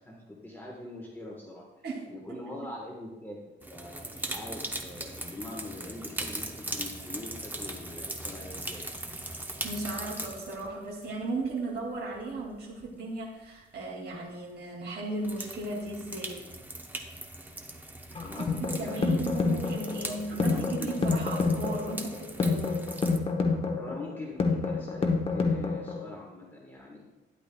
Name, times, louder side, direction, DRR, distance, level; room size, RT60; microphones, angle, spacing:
voice 1, 0.0-1.7 2.1-3.4 3.7-8.8 18.1-19.0 20.1-20.9 23.8-27.1, left 2 dB, 10° left, -2 dB, 1.3 m, -43 dB
voice 2, 1.8-2.4 9.6-16.4 18.4-22.9, right 2 dB, 55° right, -3 dB, 2.4 m, -36 dB
sound 1, 3.6-12.9 13.8-13.9 15.2-23.2, right 1 dB, 10° right, 0.7 m, -40 dB
sound 2, 18.1-26.1, left 4 dB, 30° left, 1.1 m, -28 dB
12.0 x 10.0 x 2.3 m, 1.1 s
cardioid pair, 140°, 20 cm